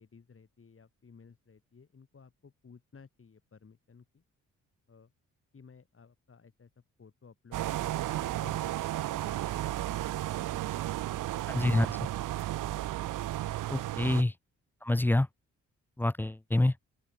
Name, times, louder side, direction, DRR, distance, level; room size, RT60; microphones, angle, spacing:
voice 1, 0.0-4.2 4.9-5.1 5.5-8.7 9.2-11.4, left 5 dB, 40° left, 4.3 m, -57 dB
sound 1, 7.5-14.2, right 14 dB, 75° right, 0.7 m, -33 dB
voice 2, 11.5-11.9 13.7-14.3 14.8-15.3 16.0-16.7, left 1 dB, 5° left, 0.4 m, -26 dB
open air
cardioid pair, 65°, 32 cm